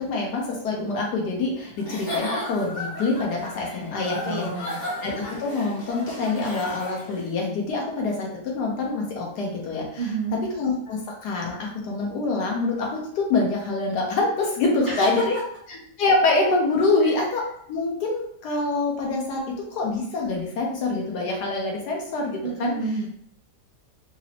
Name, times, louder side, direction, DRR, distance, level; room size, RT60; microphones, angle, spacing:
voice 1, 0.0-4.5 5.0-10.0 10.5-15.3 16.0-17.4 17.7-19.4 19.7-22.7, left 3 dB, 90° left, -1 dB, 1.4 m, -25 dB
Giggle / Chuckle chortle, 1.8-7.3, left 1 dB, 50° left, 1.2 m, -34 dB
voice 2, 4.2-4.8 10.0-10.4 14.9-15.2 17.0-17.3 22.4-23.1, right 3 dB, 70° right, -5 dB, 0.6 m, -29 dB
4.1 x 2.0 x 2.8 m, 0.66 s
omnidirectional pair, 1.7 m